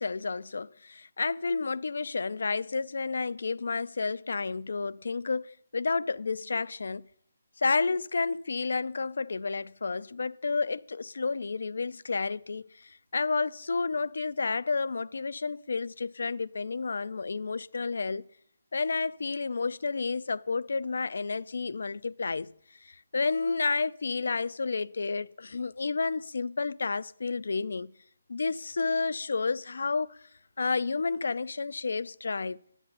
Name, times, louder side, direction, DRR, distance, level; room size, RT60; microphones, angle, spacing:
voice 1, 0.0-7.0 7.6-18.3 18.7-22.5 22.8-27.9 28.3-30.2 30.6-32.6, left 4 dB, 65° left, 0.4 m, -31 dB
10.0 x 8.4 x 8.0 m
hypercardioid pair, 175°, 0 cm